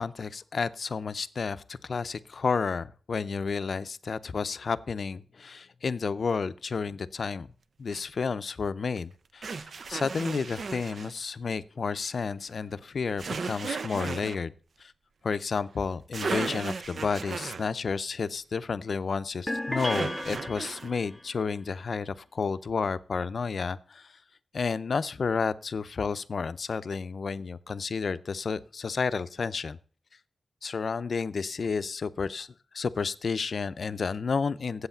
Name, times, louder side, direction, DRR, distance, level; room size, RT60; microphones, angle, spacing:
voice 1, 0.0-7.5 7.8-14.5 14.8-14.9 15.2-24.1 24.5-29.8 30.6-32.5 32.7-34.9, left 5 dB, 60° left, 15 dB, 0.5 m, -31 dB
sound 1, 7.9-8.0 9.4-11.1 13.2-14.4 15.8-15.9 16.1-17.7 19.8-20.9, right 4 dB, 60° right, 0.5 m, -35 dB
sound 2, 19.5-21.2, left 1 dB, 10° left, 0.5 m, -34 dB
8.0 x 8.0 x 7.1 m, 0.42 s
wide cardioid pair, 110°, 0 cm